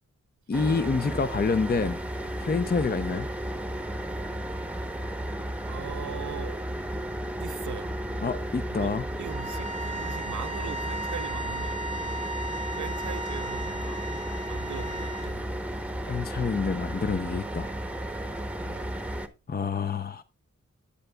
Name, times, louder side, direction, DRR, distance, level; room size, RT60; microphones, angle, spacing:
voice 1, 0.5-2.0 2.4-3.3 8.2-9.1 16.0-17.7 19.5-20.2, left 4 dB, 30° left, 0.5 m, -27 dB
sound 1, 0.5-19.3, right 1 dB, 5° right, 0.8 m, -34 dB
voice 2, 5.6-6.6 7.4-7.9 8.7-12.2 12.7-14.0 14.5-15.5 18.6-18.9, right 9 dB, 65° right, 0.6 m, -41 dB
sound 2, 9.3-15.4, right 2 dB, 50° left, 1.3 m, -36 dB
17.0 x 6.8 x 2.2 m
wide cardioid pair, 85°, 31 cm